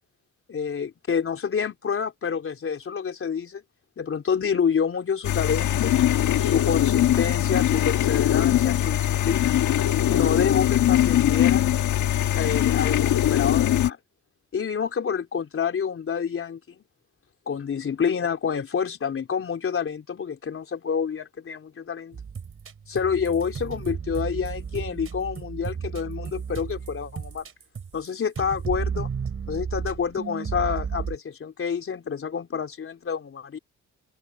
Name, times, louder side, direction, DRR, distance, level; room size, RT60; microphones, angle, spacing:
voice 1, 0.5-3.6 4.0-5.9 6.4-9.6 10.1-11.7 12.4-14.0 14.5-16.8 17.5-22.2 22.9-27.5 27.9-29.1 29.5-33.6, left 6 dB, 45° left, 3.7 m, -28 dB
sound 1, 5.2-13.9, left 12 dB, 75° left, 1.6 m, -21 dB
sound 2, 22.1-28.1 28.3-31.2, right 6 dB, 45° right, 4.6 m, -33 dB
open air
cardioid pair, 90°, 30 cm